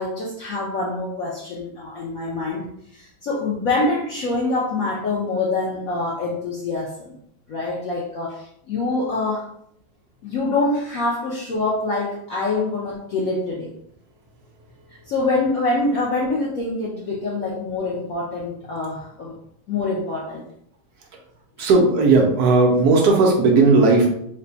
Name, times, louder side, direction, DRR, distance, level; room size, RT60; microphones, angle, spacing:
voice 1, 0.0-2.6 2.9-7.1 7.5-9.5 10.2-13.7 15.0-19.3 19.7-20.4 21.6-21.7, left 2 dB, 80° left, -5 dB, 0.7 m, -25 dB
voice 2, 21.6-24.1, right 3 dB, 70° right, 0 dB, 0.9 m, -15 dB
3.3 x 2.2 x 3.9 m, 0.72 s
omnidirectional pair, 2.2 m